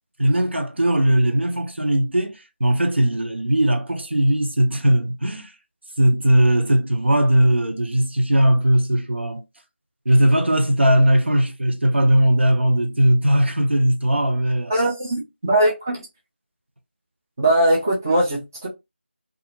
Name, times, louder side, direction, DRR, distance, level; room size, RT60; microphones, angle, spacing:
voice 1, 0.2-5.5 6.0-9.4 10.0-14.8, right 1 dB, 70° right, 0.7 m, -19 dB
voice 2, 14.7-16.0 17.4-18.7, right 1 dB, 15° right, 0.5 m, -20 dB
2.4 x 2.3 x 2.8 m
figure-of-eight pair, 170°, 6 cm